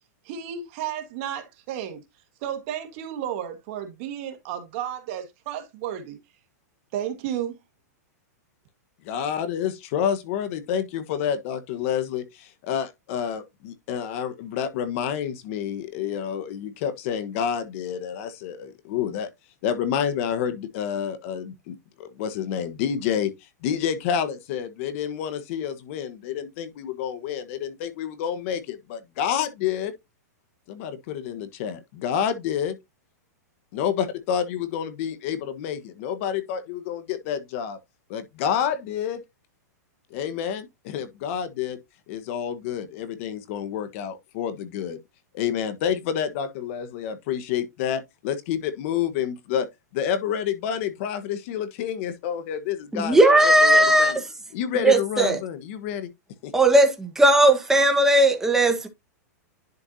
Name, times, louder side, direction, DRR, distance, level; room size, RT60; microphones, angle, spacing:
voice 1, 0.2-2.0 2.4-6.2 6.9-7.6, right 10 dB, 45° right, 1.6 m, -32 dB
voice 2, 9.0-19.3 19.6-23.3 23.6-29.9 30.7-32.8 33.7-37.8 38.1-39.2 40.1-41.8 42.1-45.0 45.3-49.7 49.9-54.2 54.5-56.1 56.4-56.5, left 8 dB, 50° left, 1.2 m, -29 dB
voice 3, 52.9-54.2 54.8-55.4 56.5-58.9, right 1 dB, 5° right, 1.3 m, -17 dB
11.0 x 4.5 x 2.7 m
hypercardioid pair, 145°, 9 cm